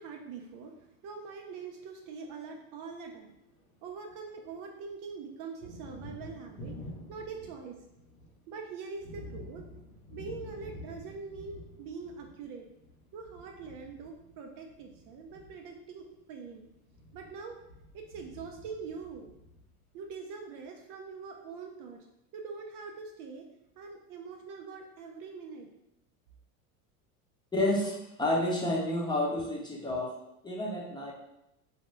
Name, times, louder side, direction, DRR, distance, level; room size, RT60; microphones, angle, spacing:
voice 1, 0.0-3.3 3.8-6.8 7.1-7.8 8.5-9.7 10.1-12.7 13.1-16.7 17.1-17.6 17.9-19.3 19.9-22.1 22.3-23.5 23.8-25.7, right 5 dB, 50° right, 2 dB, 0.5 m, -43 dB
Thunder, 3.3-4.6 4.8-20.1, left 1 dB, 85° left, 1.2 m, -49 dB
voice 2, 27.5-30.2 30.4-31.1, left 1 dB, 10° left, -3 dB, 0.7 m, -30 dB
2.7 x 2.2 x 3.2 m, 0.86 s
hypercardioid pair, 95°, 42 cm